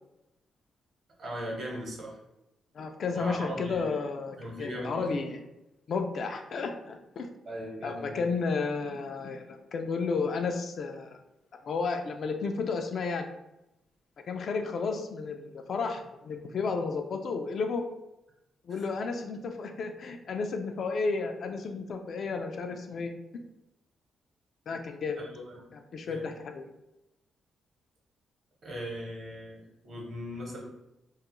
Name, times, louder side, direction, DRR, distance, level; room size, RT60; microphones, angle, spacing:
voice 1, 1.2-2.2 3.1-4.0 4.4-5.1 7.5-8.3 18.7-18.8 25.2-26.2 28.6-30.6, equal, 60° right, -2 dB, 0.9 m, -39 dB
voice 2, 2.7-5.4 5.9-7.3 7.8-11.2 11.7-13.3 14.3-17.9 18.6-23.4 24.7-25.2 25.7-26.7, left 4 dB, 60° left, 5 dB, 0.3 m, -32 dB
2.3 x 2.1 x 2.9 m, 0.89 s
cardioid pair, 80°, 0 cm